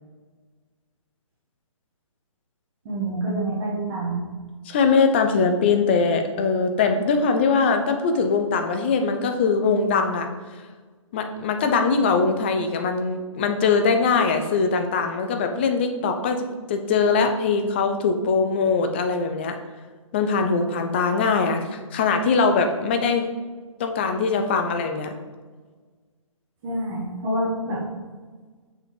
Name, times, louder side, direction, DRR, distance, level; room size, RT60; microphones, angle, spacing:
voice 1, 2.8-4.2 26.6-27.8, right 1 dB, 25° right, -7 dB, 1.3 m, -27 dB
voice 2, 4.7-10.3 11.1-19.6 20.1-23.2 23.8-25.1, left 4 dB, 20° left, 6 dB, 0.3 m, -22 dB
6.2 x 4.9 x 3.2 m, 1.4 s
figure-of-eight pair, 140°, 17 cm